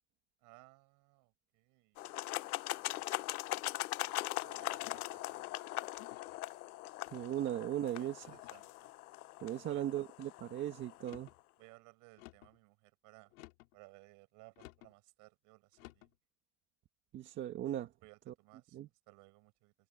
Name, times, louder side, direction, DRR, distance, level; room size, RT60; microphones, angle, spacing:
voice 1, 0.4-2.4 2.7-3.1 3.3-5.5 7.9-8.9 9.6-9.8 11.6-13.3 13.7-16.1 18.0-18.8 19.1-19.7, right 26 dB, 45° right, 7.3 m, -61 dB
cooking tomato sauce, 2.0-11.0, left 18 dB, 90° left, 1.0 m, -41 dB
Wind instrument woodwind instrument, 3.4-7.9, left 24 dB, 50° left, 3.4 m, -60 dB
sound 1, 4.8-5.3 6.0-6.4 7.1-7.6 8.3-8.7 9.4-9.8 10.9-11.4 12.2-12.6 13.3-13.8 14.6-14.9 15.7-16.1, left 19 dB, 70° left, 2.8 m, -56 dB
voice 2, 7.1-8.4 9.4-11.3 17.1-17.9 18.3-18.4 18.7-18.9, right 12 dB, 25° right, 1.7 m, -38 dB
supercardioid pair, 165°, 43 cm